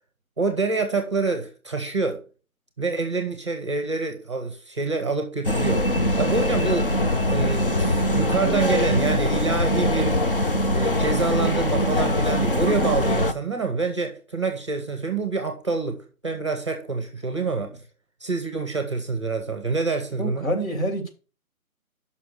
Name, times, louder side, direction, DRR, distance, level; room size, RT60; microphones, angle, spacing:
voice 1, 0.4-2.2 2.8-5.8 6.2-6.9 7.3-10.2 10.7-17.7 18.2-20.4, right 4 dB, 20° right, 0.8 m, -26 dB
sound 1, 5.4-13.3, left 1 dB, 40° left, 0.5 m, -22 dB
voice 2, 20.2-21.1, right 1 dB, 60° left, 2.9 m, -26 dB
5.9 x 5.7 x 6.4 m
hypercardioid pair, 165°, 44 cm